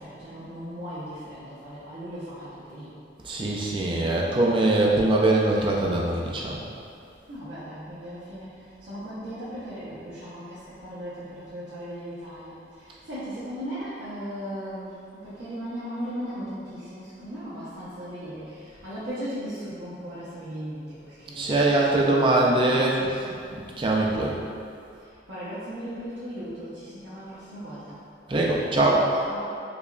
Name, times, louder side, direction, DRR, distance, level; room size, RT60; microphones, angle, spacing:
voice 1, 0.0-3.0 7.3-22.7 25.0-28.0 28.3-28.6 29.1-29.6, equal, 70° right, -13 dB, 0.8 m, -37 dB
voice 2, 3.2-6.6 21.3-23.2 23.5-24.3 28.3-29.1, right 2 dB, 25° right, -3 dB, 0.3 m, -22 dB
4.9 x 2.3 x 2.4 m, 2.5 s
head